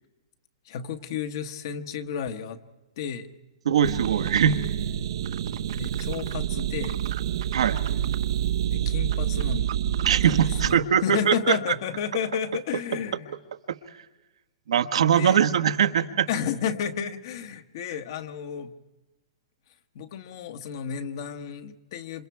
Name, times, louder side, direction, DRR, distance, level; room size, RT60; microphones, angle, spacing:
voice 1, 0.6-2.6 3.0-3.3 5.7-7.0 8.7-9.7 10.2-13.3 15.1-15.4 16.3-18.7 19.9-22.3, left 8 dB, 45° left, 10 dB, 1.2 m, -32 dB
voice 2, 3.6-4.6 7.5-7.8 10.1-11.6 13.7-13.8 14.7-16.3, right 8 dB, 80° right, 7 dB, 1.3 m, -22 dB
sound 1, 3.8-10.7, right 10 dB, 60° right, 0.7 m, -27 dB
27.5 x 26.0 x 4.7 m, 1.1 s
hypercardioid pair, 165°, 3 cm